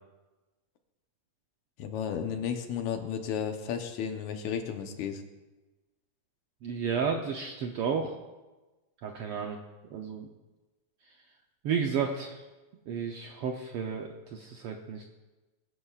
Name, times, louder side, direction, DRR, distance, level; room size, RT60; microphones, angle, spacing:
voice 1, 1.8-5.2, left 8 dB, 75° left, 6 dB, 2.3 m, -33 dB
voice 2, 6.6-8.1 9.0-9.6 9.9-10.3 11.6-12.4 12.9-15.0, right 6 dB, 70° right, 2 dB, 1.4 m, -32 dB
21.5 x 9.9 x 2.4 m, 1.1 s
omnidirectional pair, 3.4 m